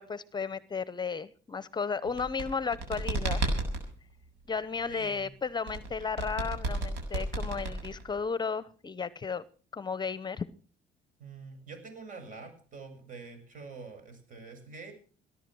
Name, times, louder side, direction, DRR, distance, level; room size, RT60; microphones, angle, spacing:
voice 1, 0.0-3.6 4.5-9.4 9.7-10.5, left 5 dB, 25° left, 17 dB, 0.8 m, -34 dB
sound 1, 2.0-3.8 5.7-8.2, right 2 dB, 85° right, 7.8 m, -32 dB
voice 2, 4.9-5.3 11.2-14.9, right 4 dB, 50° right, 7 dB, 7.4 m, -46 dB
19.5 x 11.0 x 6.2 m, 0.41 s
cardioid pair, 110°, 17 cm